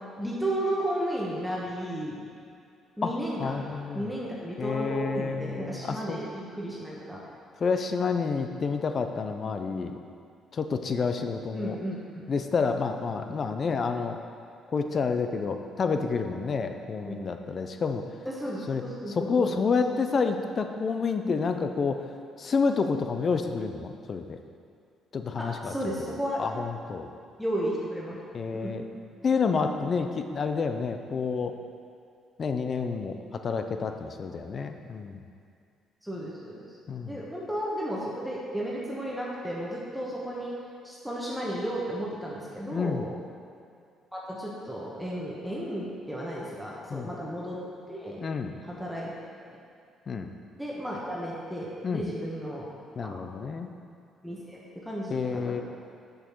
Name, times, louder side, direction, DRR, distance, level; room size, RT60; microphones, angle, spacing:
voice 1, 0.2-2.2 3.0-7.2 11.5-12.3 17.0-17.2 18.2-19.6 25.4-26.4 27.4-28.2 28.5-28.7 36.0-36.6 37.0-40.5 40.8-43.0 44.1-47.6 47.9-48.2 48.6-49.1 50.6-52.7 53.0-53.1 54.2-54.6 54.8-55.6, equal, ahead, -5 dB, 1.3 m, -33 dB
voice 2, 3.4-4.1 4.6-6.2 7.6-9.9 10.5-11.8 12.3-14.2 14.7-18.0 18.7-22.0 22.4-24.4 25.1-27.1 28.3-28.8 29.2-31.5 32.4-35.2 36.9-37.2 42.7-43.1 46.9-47.2 48.2-48.6 50.1-50.3 51.8-52.1 53.0-53.7 55.1-55.6, left 5 dB, 45° left, 7 dB, 0.6 m, -29 dB
6.4 x 6.3 x 4.6 m, 2.4 s
supercardioid pair, 70°, 0 cm